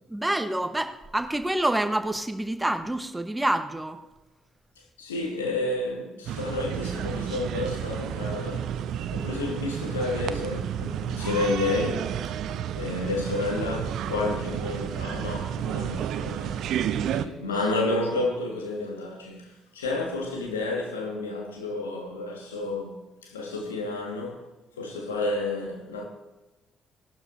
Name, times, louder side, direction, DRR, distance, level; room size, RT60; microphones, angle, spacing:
voice 1, 0.1-4.0, right 1 dB, 10° right, 1.1 m, -27 dB
voice 2, 5.0-8.8 9.1-12.1 12.7-16.7 17.1-24.5 24.8-26.0, left 2 dB, 85° left, 1.7 m, -30 dB
sound 1, 6.3-17.3, right 9 dB, 65° right, 0.5 m, -31 dB
17.5 x 12.0 x 2.7 m
figure-of-eight pair, 45°, 0 cm